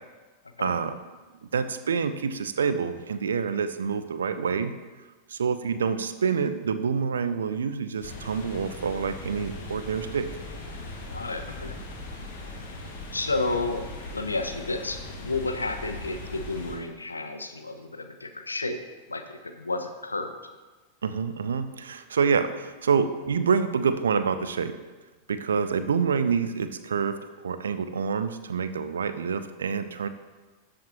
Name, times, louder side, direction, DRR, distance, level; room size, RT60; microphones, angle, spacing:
voice 1, 0.6-0.9 1.5-4.7 5.3-10.3 21.0-24.8 25.3-27.2 27.4-30.1, right 6 dB, 70° right, 11 dB, 0.6 m, -27 dB
sound 1, 8.0-16.8, left 2 dB, 55° left, 2.0 m, -39 dB
voice 2, 11.1-11.8 13.1-13.9 14.1-18.8 19.1-20.3, left 3 dB, 80° left, 7 dB, 0.8 m, -31 dB
12.5 x 7.5 x 3.0 m, 1.3 s
figure-of-eight pair, 90°, 0 cm